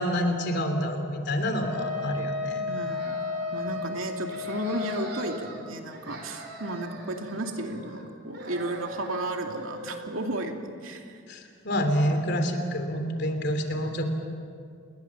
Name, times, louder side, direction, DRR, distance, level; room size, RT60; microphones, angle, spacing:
voice 1, 0.0-2.6 11.3-14.1, equal, 55° left, 6 dB, 3.3 m, -27 dB
Wind instrument woodwind instrument, 1.6-5.1, left 4 dB, 15° right, 6.5 m, -33 dB
sound 1, 2.7-3.9 4.2-5.6 5.9-8.1 8.3-10.3, right 1 dB, 55° right, 4.6 m, -41 dB
voice 2, 2.7-3.3 3.5-11.2, right 1 dB, 90° right, 3 dB, 2.7 m, -33 dB
29.5 x 21.0 x 7.3 m, 2.3 s
head